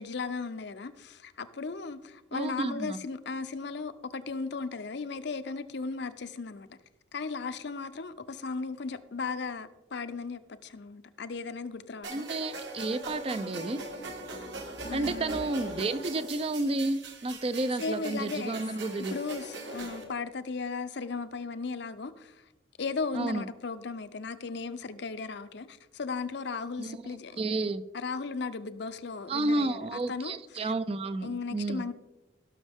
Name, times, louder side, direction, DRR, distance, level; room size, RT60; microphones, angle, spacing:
voice 1, 0.0-6.8 7.1-12.2 14.8-15.4 17.8-18.6 19.1-22.4 22.8-27.4 27.9-30.7 31.2-31.9, left 4 dB, 60° left, 12 dB, 0.6 m, -36 dB
voice 2, 2.3-3.0 12.1-13.8 14.9-19.2 23.1-23.5 26.8-27.0 27.4-27.8 29.3-31.8, right 2 dB, 30° right, 13 dB, 0.4 m, -31 dB
sound 1, 12.0-20.0, right 2 dB, 60° right, 1.7 m, -41 dB
17.0 x 6.2 x 3.6 m, 1.0 s
head